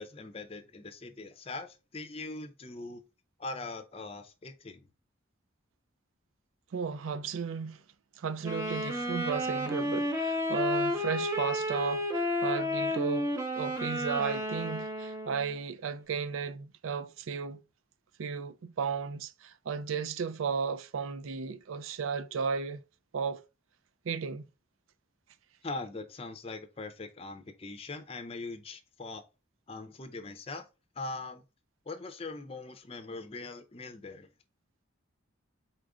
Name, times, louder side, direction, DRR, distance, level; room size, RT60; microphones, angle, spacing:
voice 1, 0.0-3.0 3.4-4.9 25.6-29.2 29.7-30.7 31.0-31.4 31.9-34.3, left 3 dB, 30° left, 0.5 m, -41 dB
voice 2, 6.7-7.8 8.2-17.6 18.2-22.8 23.1-23.4 24.0-24.4, right 6 dB, 80° right, 0.4 m, -34 dB
Wind instrument woodwind instrument, 8.4-15.6, left 1 dB, 15° right, 0.6 m, -32 dB
4.3 x 2.5 x 4.8 m
head